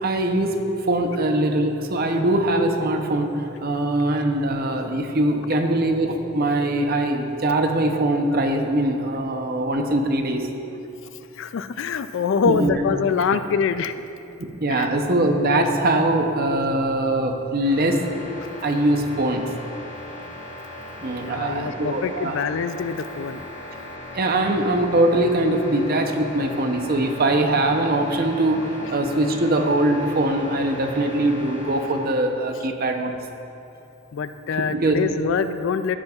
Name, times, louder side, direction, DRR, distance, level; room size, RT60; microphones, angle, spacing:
voice 1, 0.0-10.5 12.4-12.7 14.4-18.0 18.6-19.5 21.0-22.4 24.1-33.2 34.7-35.0, right 1 dB, 45° right, 4 dB, 0.7 m, -22 dB
voice 2, 11.4-13.9 14.7-14.9 21.2-23.4 34.1-36.0, left 6 dB, 60° left, 11 dB, 0.3 m, -25 dB
sound 1, 17.6-32.1, left 1 dB, 35° left, 1.6 m, -38 dB
14.0 x 7.8 x 2.4 m, 2.8 s
head